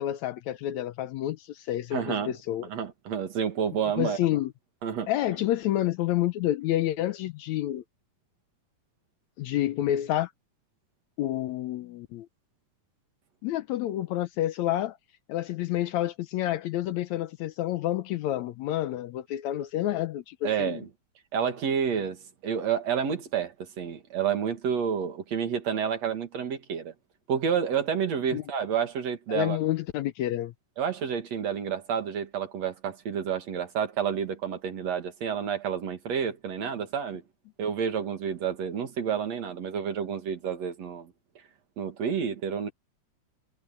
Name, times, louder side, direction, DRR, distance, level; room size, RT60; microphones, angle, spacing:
voice 1, 0.0-2.7 4.0-4.5 5.1-7.8 9.4-10.3 11.2-12.3 13.4-15.0 15.3-20.8 28.3-28.4 29.3-30.5, left 13 dB, 75° left, 1.9 m, -29 dB
voice 2, 1.9-2.3 2.7-4.2 4.8-5.1 20.4-20.9 21.3-26.9 27.3-29.6 30.8-37.2 37.6-41.1 41.8-42.7, right 7 dB, 60° right, 3.1 m, -29 dB
omnidirectional pair, 3.6 m